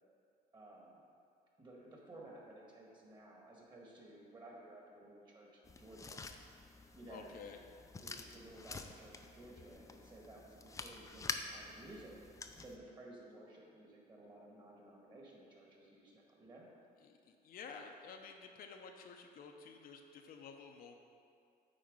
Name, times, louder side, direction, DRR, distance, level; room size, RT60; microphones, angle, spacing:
voice 1, 0.5-1.0 1.6-6.2 6.6-6.7 6.9-7.7 8.0-12.1 12.6-16.7, right 1 dB, 25° right, -2 dB, 1.8 m, -55 dB
sound 1, 5.6-12.8, left 4 dB, 20° left, 0.5 m, -48 dB
voice 2, 7.1-7.6 17.0-21.0, left 5 dB, 60° left, 3 dB, 0.7 m, -52 dB
8.9 x 4.2 x 5.4 m, 2.4 s
cardioid pair, 110°, 17 cm